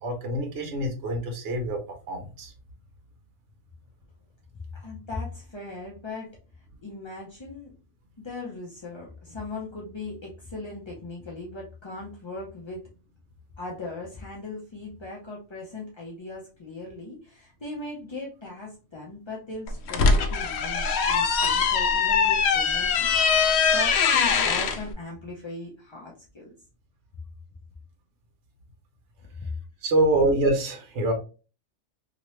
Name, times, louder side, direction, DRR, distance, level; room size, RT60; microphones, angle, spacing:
voice 1, 0.0-1.8 2.1-2.5 29.8-31.1, right 2 dB, 60° right, 2 dB, 1.1 m, -25 dB
voice 2, 4.7-6.3 6.8-7.7 8.2-12.8 13.6-26.5 29.4-29.5, left 3 dB, 35° left, -4 dB, 0.5 m, -39 dB
sound 1, 19.7-24.8, left 5 dB, 65° left, 0.7 m, -22 dB
2.9 x 2.9 x 3.0 m, 0.34 s
omnidirectional pair, 1.4 m